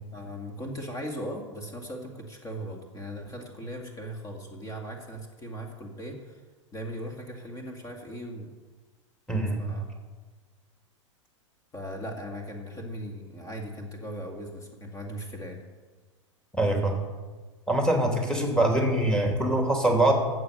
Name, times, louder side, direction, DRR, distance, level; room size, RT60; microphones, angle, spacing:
voice 1, 0.1-6.4 6.7-8.5 9.6-9.8 11.7-15.6, equal, 20° left, 2 dB, 2.2 m, -38 dB
voice 2, 9.3-9.6 16.5-17.0 17.7-20.1, right 1 dB, 5° left, 2 dB, 2.8 m, -24 dB
13.0 x 8.0 x 6.7 m, 1.4 s
hypercardioid pair, 100°, 16 cm